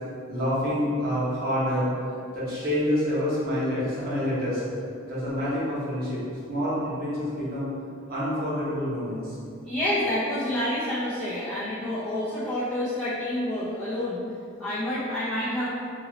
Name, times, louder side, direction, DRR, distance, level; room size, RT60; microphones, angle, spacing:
voice 1, 0.3-1.9 2.3-4.6 5.1-6.2 6.5-7.7 8.1-9.4, equal, 50° right, -9 dB, 1.2 m, -27 dB
voice 2, 9.6-14.2 14.6-15.7, left 1 dB, ahead, -15 dB, 0.7 m, -28 dB
3.0 x 2.7 x 3.9 m, 2.4 s
head